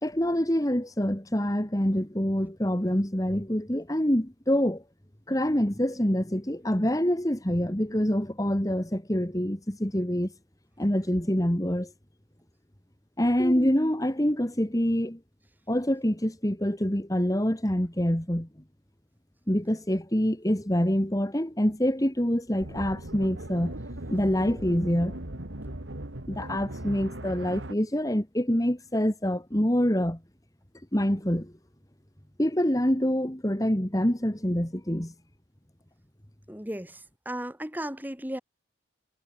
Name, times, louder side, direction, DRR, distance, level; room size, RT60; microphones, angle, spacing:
voice 1, 0.0-4.8 5.3-10.3 10.8-11.9 13.2-15.2 15.7-18.5 19.5-23.7 24.1-25.2 26.3-30.2 30.9-31.5 32.4-35.1, equal, 20° left, 2.1 m, -26 dB
sound 1, 22.6-27.7, right 1 dB, 80° right, 3.0 m, -38 dB
voice 2, 36.5-38.4, right 1 dB, 10° right, 3.4 m, -35 dB
head